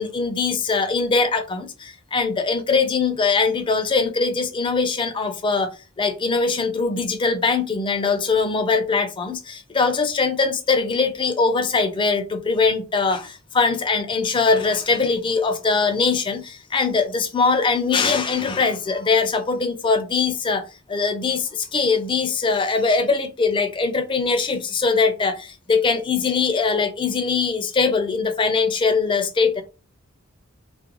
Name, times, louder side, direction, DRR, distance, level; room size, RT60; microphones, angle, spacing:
voice 1, 0.0-5.7 6.0-29.6, left 4 dB, 25° left, 0.4 m, -22 dB
2.4 x 2.1 x 2.8 m
head